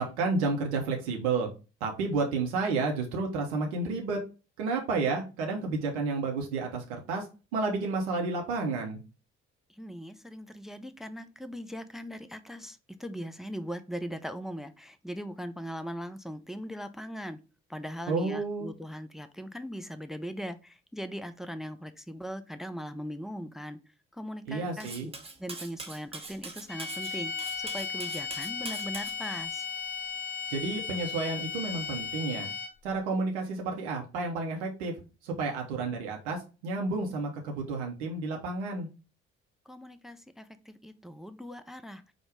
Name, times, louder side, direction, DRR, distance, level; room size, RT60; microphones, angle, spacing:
voice 1, 0.0-1.5 1.8-4.2 4.6-7.3 7.5-9.0 18.1-18.7 24.5-25.1 30.5-32.5 32.8-34.9 35.2-38.9, right 3 dB, 75° right, 1 dB, 0.7 m, -31 dB
voice 2, 9.8-17.4 17.7-23.8 24.2-25.1 25.4-29.6 39.7-42.0, equal, ahead, 11 dB, 0.4 m, -40 dB
Cutlery silverware, 24.8-29.2, right 3 dB, 15° right, 1.0 m, -42 dB
sound 1, 26.7-32.9, left 6 dB, 30° left, 1.0 m, -36 dB
5.0 x 2.1 x 4.7 m, 0.32 s
figure-of-eight pair, 40°, 34 cm